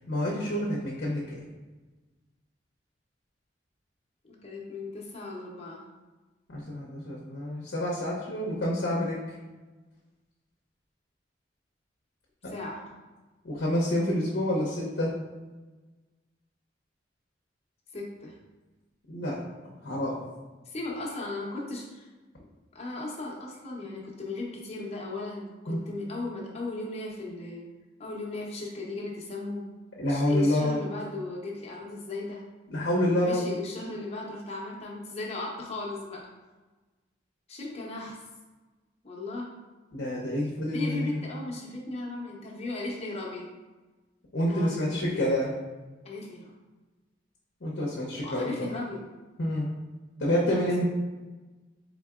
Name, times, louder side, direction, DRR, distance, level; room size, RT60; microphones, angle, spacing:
voice 1, 0.1-1.4 6.5-9.4 12.4-12.5 13.4-15.2 19.1-19.4 19.8-20.2 25.7-25.8 30.0-30.8 32.7-33.5 39.9-41.2 44.3-45.5 47.6-48.5 49.4-49.7 50.2-50.8, left 1 dB, 70° left, -5 dB, 0.7 m, -28 dB
voice 2, 4.2-5.8 12.5-12.8 17.9-18.3 20.7-22.1 22.7-27.6 28.0-29.7 30.1-32.4 33.2-36.2 37.5-38.2 39.0-39.5 40.7-43.5 44.5-45.3 46.0-46.5 48.2-49.1 50.4-50.8, left 2 dB, 35° left, -3 dB, 0.8 m, -36 dB
3.8 x 3.6 x 2.4 m, 1.2 s
head